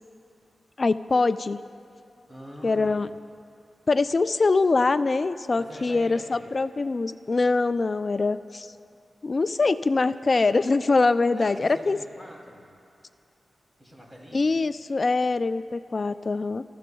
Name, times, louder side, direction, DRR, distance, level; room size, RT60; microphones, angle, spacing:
voice 1, 0.8-1.6 2.6-3.1 3.9-8.7 9.2-12.0 14.3-16.6, left 3 dB, 40° left, 12 dB, 0.3 m, -23 dB
voice 2, 2.3-3.0 5.6-6.5 11.3-12.7 13.8-14.5, equal, 20° right, -3 dB, 2.9 m, -44 dB
20.5 x 14.5 x 2.3 m, 2.6 s
wide cardioid pair, 100°, 0 cm